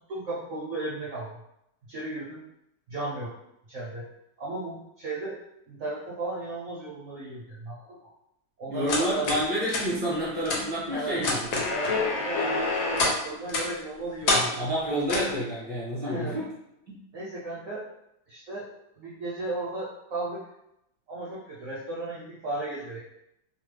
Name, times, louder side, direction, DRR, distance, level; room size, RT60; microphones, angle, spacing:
voice 1, 0.1-1.4 1.9-2.4 2.9-3.4 3.7-4.1 4.4-5.4 5.7-8.0 8.6-9.3 10.9-11.2 11.7-14.5 16.0-16.4 17.1-17.9 18.3-20.4 21.1-23.0, right 2 dB, 65° right, -7 dB, 0.8 m, -35 dB
voice 2, 8.7-11.4 14.3-16.4 16.9-17.0, equal, 30° left, -9 dB, 0.6 m, -29 dB
sound 1, 8.9-9.4 9.7-9.8 10.5-10.6 11.2-13.2 13.5-13.7 14.3-14.5 15.1-15.3, left 3 dB, 70° left, 1.1 m, -26 dB
3.0 x 2.0 x 3.1 m, 0.82 s
omnidirectional pair, 2.0 m